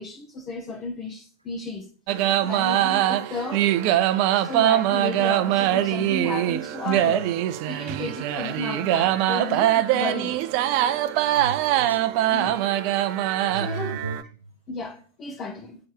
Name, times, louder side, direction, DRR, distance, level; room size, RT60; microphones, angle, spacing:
voice 1, 0.0-3.8 4.3-7.2 7.7-10.5 12.3-12.6 13.5-13.9 14.7-15.8, left 3 dB, 25° left, 1.1 m, -34 dB
sound 1, 2.1-14.2, right 13 dB, 45° right, 0.5 m, -23 dB
voice 2, 6.9-7.3 11.3-12.3 13.4-14.5, right 5 dB, 85° right, 0.8 m, -36 dB
8.4 x 4.5 x 4.7 m
figure-of-eight pair, 90°, 0 cm